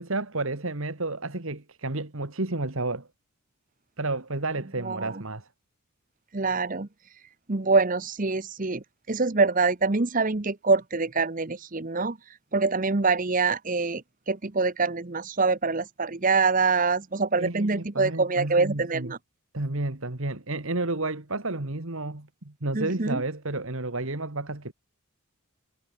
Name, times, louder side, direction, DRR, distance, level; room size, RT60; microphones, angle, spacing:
voice 1, 0.0-3.1 4.0-5.5 17.4-19.1 19.5-24.7, right 2 dB, 65° right, 2.0 m, -31 dB
voice 2, 4.8-5.2 6.3-6.9 7.5-12.2 12.5-19.2 22.7-23.2, right 4 dB, 35° right, 0.9 m, -25 dB
head